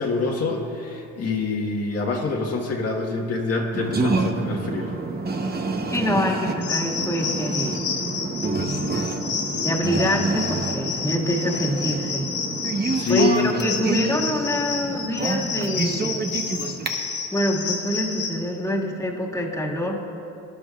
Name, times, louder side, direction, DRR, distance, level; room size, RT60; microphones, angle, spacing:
voice 1, 0.0-4.9 5.4-5.6 12.9-13.5, left 3 dB, 50° left, -1 dB, 1.6 m, -25 dB
sound 1, 3.7-16.9, right 3 dB, 30° right, 1.1 m, -28 dB
voice 2, 5.9-7.8 9.6-12.3 13.1-16.2 17.3-20.0, equal, 10° left, -3 dB, 2.0 m, -25 dB
sound 2, 6.6-18.4, left 6 dB, 75° left, 2.3 m, -30 dB
20.0 x 11.0 x 2.5 m, 2.8 s
supercardioid pair, 75°, 31 cm